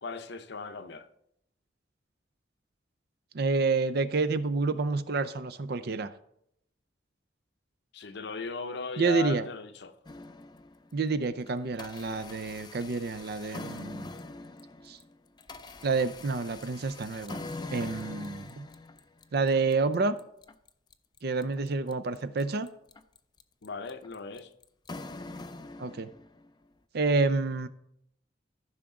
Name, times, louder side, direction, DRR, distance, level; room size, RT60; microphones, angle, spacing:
voice 1, 0.0-1.1 7.9-10.0 23.6-24.5, left 4 dB, 65° left, 0.7 m, -37 dB
voice 2, 3.3-6.1 9.0-9.5 10.9-14.1 14.9-15.0 15.8-17.4 17.7-18.7 19.3-20.1 21.2-22.7 25.8-26.1 26.9-27.7, right 4 dB, 60° right, 0.5 m, -28 dB
sound 1, 10.0-11.0 11.5-26.5, left 2 dB, 25° left, 0.5 m, -44 dB
14.0 x 5.9 x 3.7 m
head